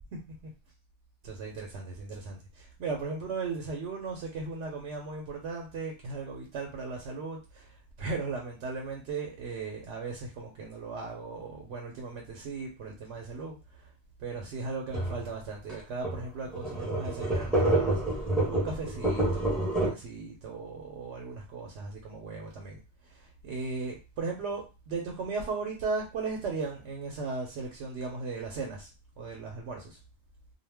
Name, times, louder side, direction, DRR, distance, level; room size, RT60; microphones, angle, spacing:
voice 1, 0.1-0.5 1.2-13.9 14.2-28.9 29.2-30.0, right 4 dB, 85° right, 0 dB, 0.9 m, -37 dB
sound 1, 14.9-15.2 15.7-15.8 16.0-16.2 16.5-19.9, right 1 dB, ahead, 0.7 m, -28 dB
2.4 x 2.1 x 3.3 m, 0.29 s
omnidirectional pair, 1.1 m